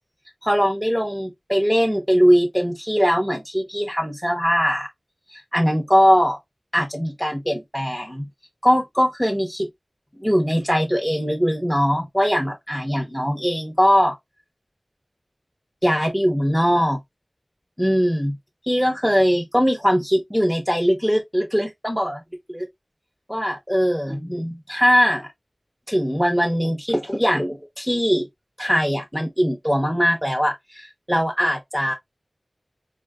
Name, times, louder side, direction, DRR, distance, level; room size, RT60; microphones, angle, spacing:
voice 1, 0.4-4.9 5.3-6.4 6.7-8.3 8.6-9.7 10.2-14.1 15.8-17.0 17.8-18.4 18.7-22.2 22.5-22.7 23.3-25.3 25.9-28.3 28.6-31.9, equal, ahead, 0.7 m, -21 dB
3.7 x 2.6 x 2.2 m
wide cardioid pair, 55°, 0 cm